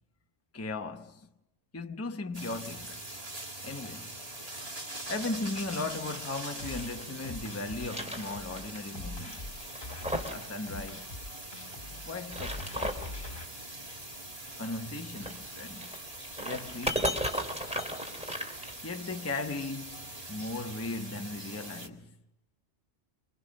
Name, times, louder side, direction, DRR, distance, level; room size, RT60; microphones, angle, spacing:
voice 1, 0.5-1.2 1.7-3.0 3.6-4.2 5.1-9.5 10.3-11.1 12.0-13.1 14.6-15.9 16.4-17.2 18.8-22.1, left 3 dB, 15° left, 0.8 m, -37 dB
sound 1, 2.3-21.9, right 1 dB, 30° right, 2.2 m, -43 dB
sound 2, 5.3-7.1 7.5-8.8 9.0-9.1 9.6-10.5 10.7-10.8 12.1-13.2 15.1-19.2, equal, 5° right, 2.7 m, -36 dB
sound 3, 6.6-13.4, left 2 dB, 40° left, 2.0 m, -43 dB
29.0 x 24.5 x 6.4 m
omnidirectional pair, 1.3 m